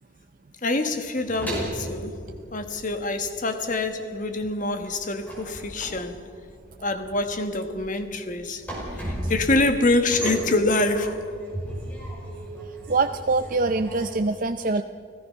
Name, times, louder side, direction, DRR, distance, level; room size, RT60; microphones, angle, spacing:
voice 1, 0.6-2.2 2.5-6.2 6.8-11.3, left 2 dB, 40° left, 1.4 m, -26 dB
sound 1, 1.1-3.4 3.6-14.2, right 1 dB, 10° left, 5.4 m, -35 dB
voice 2, 12.9-14.8, right 3 dB, 40° right, 0.5 m, -24 dB
29.5 x 17.0 x 5.6 m
head